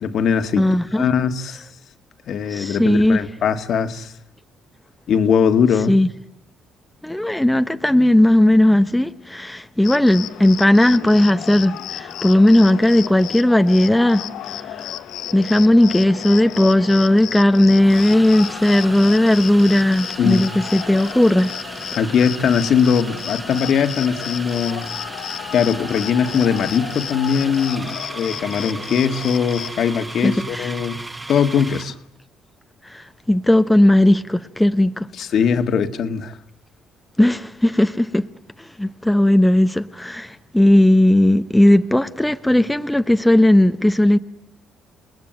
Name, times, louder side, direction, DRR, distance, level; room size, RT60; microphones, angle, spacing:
voice 1, 0.0-1.6 2.3-4.1 5.1-6.0 20.2-20.5 22.0-24.9 25.5-31.0 31.3-31.9 35.2-36.3, left 7 dB, 60° left, 1.7 m, -20 dB
voice 2, 0.6-1.1 2.5-3.2 5.9-6.1 7.0-14.9 15.3-21.5 30.2-30.7 32.8-35.1 37.2-38.3 38.8-44.2, left 1 dB, 5° left, 1.0 m, -16 dB
Cricket, 9.8-29.7, left 12 dB, 75° left, 1.2 m, -33 dB
sound 1, 17.8-32.0, right 2 dB, 15° right, 1.6 m, -35 dB
29.0 x 20.0 x 9.2 m
cardioid pair, 100°, 0 cm